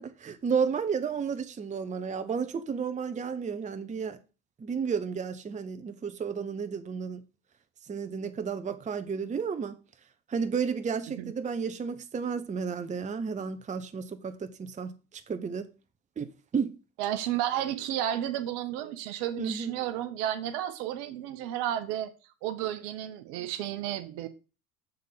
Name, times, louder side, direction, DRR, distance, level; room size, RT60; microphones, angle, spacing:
voice 1, 0.0-4.2 4.6-7.2 7.9-9.8 10.3-14.9 15.3-15.7 16.2-16.8 19.4-19.8, right 6 dB, 15° right, 0.7 m, -32 dB
voice 2, 17.0-22.1 22.4-24.3, right 11 dB, 65° right, 1.0 m, -32 dB
6.7 x 3.7 x 5.6 m
hypercardioid pair, 70°, 44 cm